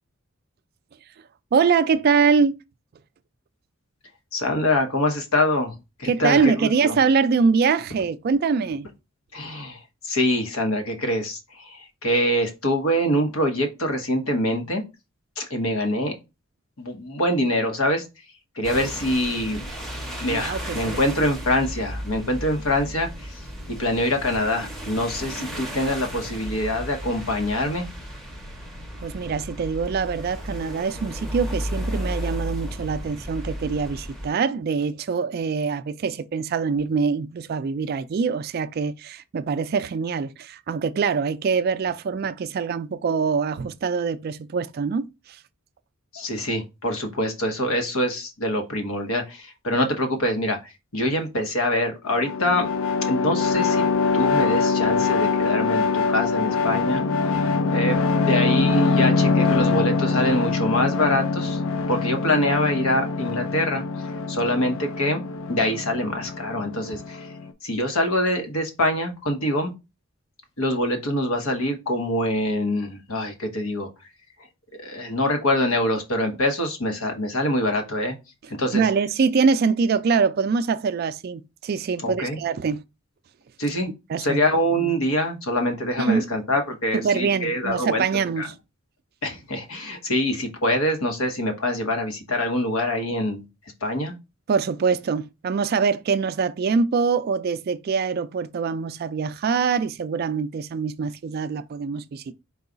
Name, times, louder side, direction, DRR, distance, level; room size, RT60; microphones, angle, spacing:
voice 1, 1.5-2.6 6.1-8.9 20.3-21.0 29.0-45.1 78.7-82.8 84.1-84.4 86.0-86.3 86.9-88.5 94.5-102.3, right 5 dB, 45° right, 0.3 m, -24 dB
voice 2, 4.3-7.0 9.3-14.8 15.4-16.1 16.8-18.1 18.6-19.6 20.2-23.4 23.8-27.9 46.1-52.7 53.0-53.9 54.1-57.0 57.7-61.6 61.9-63.8 64.3-65.2 65.5-67.3 67.6-69.7 70.6-73.9 74.8-78.2 78.5-78.9 82.0-82.4 83.6-83.9 84.2-88.0 88.4-88.5 89.2-93.4 93.8-94.1, left 1 dB, 85° left, 1.0 m, -24 dB
sound 1, 18.6-34.3, equal, ahead, 0.7 m, -34 dB
sound 2, 52.1-67.5, left 4 dB, 70° left, 0.4 m, -23 dB
4.7 x 2.3 x 3.8 m
head